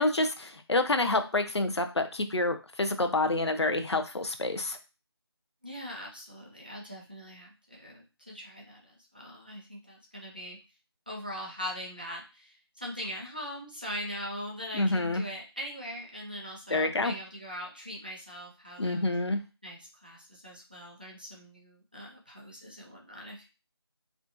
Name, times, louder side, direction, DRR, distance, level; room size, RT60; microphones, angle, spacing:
voice 1, 0.0-4.8 14.7-15.2 16.7-17.1 18.8-19.4, left 2 dB, 80° left, 7 dB, 0.6 m, -28 dB
voice 2, 5.6-10.6 11.1-19.1 19.6-23.5, equal, 20° right, -2 dB, 0.4 m, -41 dB
2.5 x 2.2 x 2.4 m, 0.31 s
figure-of-eight pair, 170°, 14 cm